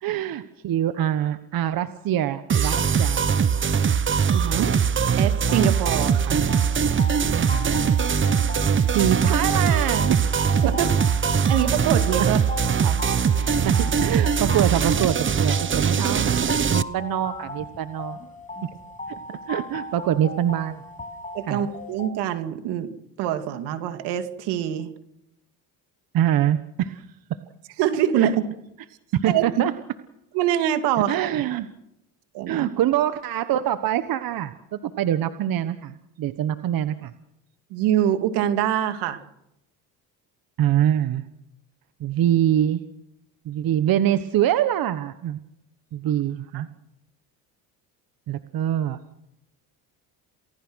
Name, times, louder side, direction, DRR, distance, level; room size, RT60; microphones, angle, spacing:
voice 1, 0.0-3.2 6.3-6.5 7.5-7.8 8.9-10.5 13.6-13.7 14.0-18.2 19.3-20.8 21.5-21.7 26.1-27.1 28.2-28.3 29.1-29.7 31.1-31.7 32.5-37.1 40.6-41.2 42.0-42.8 43.4-45.4 45.9-46.7 48.3-49.0, right 11 dB, 60° right, 11 dB, 1.4 m, -24 dB
sound 1, 2.5-16.8, right 7 dB, 30° right, 1.0 m, -21 dB
voice 2, 4.3-4.8 5.2-6.5 10.6-10.9 11.5-12.4 12.8-13.0 13.4-13.6 21.3-22.9 23.2-24.9 27.8-28.4 29.3-29.4 30.3-31.1 32.3-32.7 37.7-39.2 46.5-46.6, right 10 dB, 80° right, 8 dB, 2.6 m, -24 dB
sound 2, 5.4-22.1, left 2 dB, 20° left, 6.3 m, -37 dB
28.5 x 19.5 x 6.4 m, 0.83 s
supercardioid pair, 90°, 39 cm